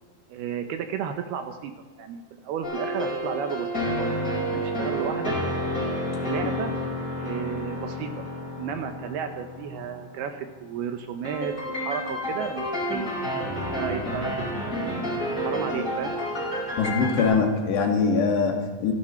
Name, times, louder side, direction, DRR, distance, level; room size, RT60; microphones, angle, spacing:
voice 1, 0.3-1.7 2.0-5.4 6.2-6.7 7.2-8.2 8.6-13.1 13.6-14.8 15.1-16.1, right 7 dB, 75° right, 6 dB, 2.6 m, -33 dB
sound 1, 2.6-10.4 11.2-17.3, equal, 20° left, 5.2 m, -30 dB
voice 2, 16.8-18.9, left 5 dB, 70° left, 2 dB, 4.1 m, -23 dB
27.0 x 11.5 x 4.4 m, 1.3 s
omnidirectional pair, 5.2 m